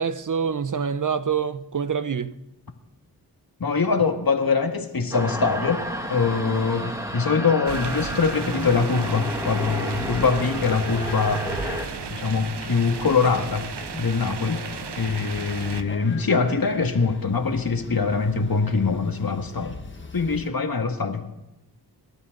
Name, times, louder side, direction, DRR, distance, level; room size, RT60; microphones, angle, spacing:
voice 1, 0.0-2.4, right 7 dB, 50° right, 0.9 m, -26 dB
voice 2, 3.6-11.5 12.1-14.7 15.0-19.8 20.1-21.3, left 4 dB, 60° left, 2.0 m, -23 dB
sound 1, 5.1-11.8, equal, 10° right, 3.0 m, -32 dB
sound 2, 7.7-15.8, right 6 dB, 75° right, 1.1 m, -35 dB
sound 3, 8.3-20.5, left 3 dB, 30° left, 1.7 m, -40 dB
26.0 x 12.5 x 4.0 m
cardioid pair, 65°, 41 cm